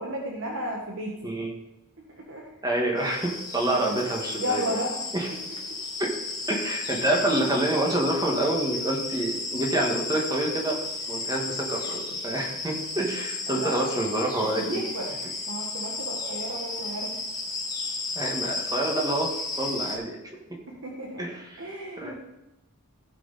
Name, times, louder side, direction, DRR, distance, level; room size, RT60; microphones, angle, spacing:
voice 1, 0.0-1.3 2.3-2.4 3.7-4.0 4.3-5.0 13.5-13.9 14.5-15.2 15.5-17.1 20.7-21.2 21.6-22.1, equal, 60° right, -2 dB, 1.5 m, -33 dB
voice 2, 2.6-4.8 5.1-5.3 6.0-6.1 6.5-10.8 11.1-14.8 18.2-20.4 21.2-22.1, right 1 dB, 15° right, 0 dB, 1.8 m, -27 dB
sound 1, 3.0-20.0, left 3 dB, 20° left, 1.5 m, -34 dB
15.5 x 6.0 x 4.2 m, 0.97 s
head